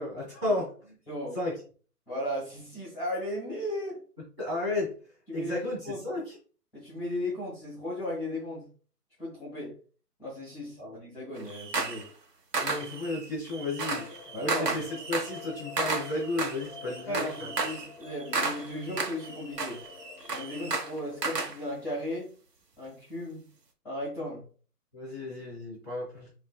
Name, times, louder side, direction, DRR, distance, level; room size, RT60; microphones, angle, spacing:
voice 1, 0.0-0.9 1.3-1.6 4.4-6.4 10.8-11.0 12.6-17.5 24.9-26.3, left 2 dB, 20° right, -7 dB, 1.5 m, -33 dB
voice 2, 2.1-4.0 5.3-5.5 5.8-6.0 6.7-8.6 9.2-9.7 10.2-12.1 14.3-14.8 16.9-19.8 20.3-22.3 22.8-23.4 23.8-24.4, left 1 dB, 5° left, -9 dB, 1.4 m, -36 dB
sound 1, 11.4-12.1 12.5-21.6, right 3 dB, 75° right, 1.0 m, -33 dB
sound 2, 13.9-21.2, left 6 dB, 45° left, 0.8 m, -48 dB
5.3 x 2.6 x 2.3 m, 0.40 s
figure-of-eight pair, 150°, 48 cm